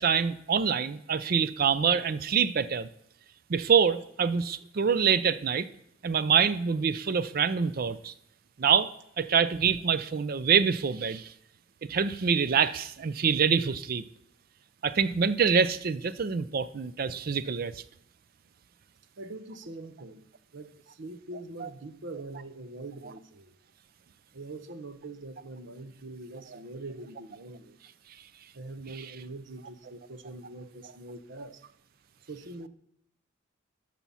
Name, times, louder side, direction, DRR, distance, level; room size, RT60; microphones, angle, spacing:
voice 1, 0.0-2.9 3.5-5.7 6.0-8.1 8.6-8.9 9.2-11.3 11.9-14.0 14.8-17.8 21.6-21.7, right 6 dB, 50° right, 15 dB, 0.4 m, -25 dB
voice 2, 19.2-23.6 24.3-27.8 28.5-31.6 32.3-32.7, right 2 dB, 70° right, 11 dB, 0.9 m, -43 dB
13.0 x 5.9 x 5.6 m, 0.77 s
head